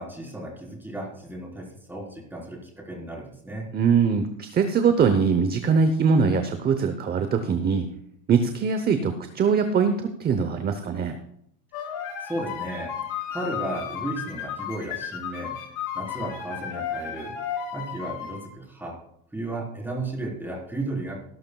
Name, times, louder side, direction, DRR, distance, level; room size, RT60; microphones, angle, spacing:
voice 1, 0.0-3.7 12.2-13.0 13.3-15.6 15.9-17.3 17.7-19.0 19.3-21.2, right 1 dB, 5° right, -3 dB, 4.0 m, -34 dB
voice 2, 3.7-7.9 8.3-11.2, right 5 dB, 25° right, 8 dB, 0.8 m, -22 dB
sound 1, 11.7-18.4, left 8 dB, 60° left, 5.0 m, -33 dB
18.0 x 11.5 x 2.3 m, 0.72 s
supercardioid pair, 140°, 40 cm